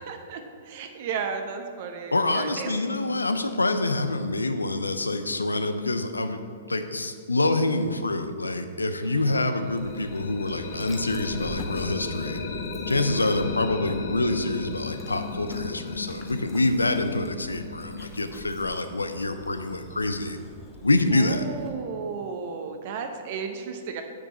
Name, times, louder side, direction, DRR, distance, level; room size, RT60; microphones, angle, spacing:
voice 1, 0.0-2.7 9.0-9.4 21.1-24.0, right 6 dB, 50° right, 6 dB, 0.8 m, -34 dB
voice 2, 2.1-6.4 6.7-12.4 12.9-20.4 20.8-21.5, left 2 dB, 85° left, 9 dB, 0.6 m, -26 dB
sound 1, 9.5-19.3, left 4 dB, 55° left, 1.1 m, -36 dB
Dog, 9.6-21.7, left 1 dB, 15° left, 1.1 m, -46 dB
7.9 x 6.5 x 4.2 m, 2.3 s
figure-of-eight pair, 110°, 0 cm